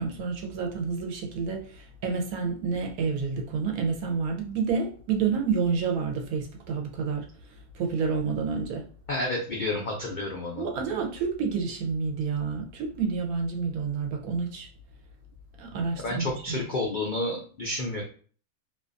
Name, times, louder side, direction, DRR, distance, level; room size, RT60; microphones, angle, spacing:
voice 1, 0.0-7.3 7.7-8.9 10.6-14.7 15.6-16.6, right 5 dB, 80° right, 1.0 m, -29 dB
voice 2, 9.1-10.7 16.0-18.0, left 2 dB, 85° left, 0.4 m, -30 dB
2.6 x 2.3 x 2.5 m
omnidirectional pair, 1.6 m